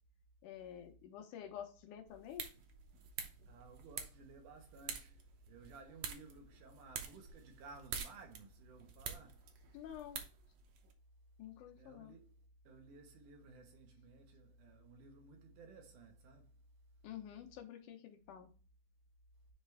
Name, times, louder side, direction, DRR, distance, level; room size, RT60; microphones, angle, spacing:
voice 1, 0.4-2.5 9.7-10.2 11.4-12.2 17.0-18.5, left 10 dB, 85° left, 2.5 m, -49 dB
sound 1, 2.1-10.9, right 7 dB, 65° right, 1.8 m, -48 dB
voice 2, 3.5-9.5 11.7-16.5, right 3 dB, 85° right, 2.8 m, -57 dB
9.8 x 3.3 x 3.4 m
omnidirectional pair, 3.5 m